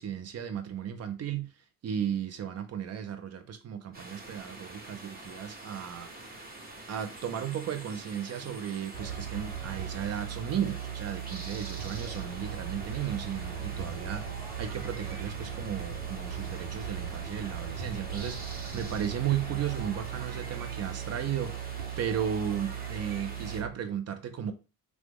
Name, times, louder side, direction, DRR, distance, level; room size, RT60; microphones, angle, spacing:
voice 1, 0.0-1.5 1.8-6.1 6.9-14.3 14.6-21.7 22.0-24.5, right 9 dB, 35° right, 0.6 m, -35 dB
sound 1, 3.9-23.6, right 2 dB, 20° right, 1.1 m, -46 dB
sound 2, 8.9-23.7, right 8 dB, 85° right, 0.7 m, -38 dB
3.1 x 2.0 x 3.0 m
hypercardioid pair, 55°, 42 cm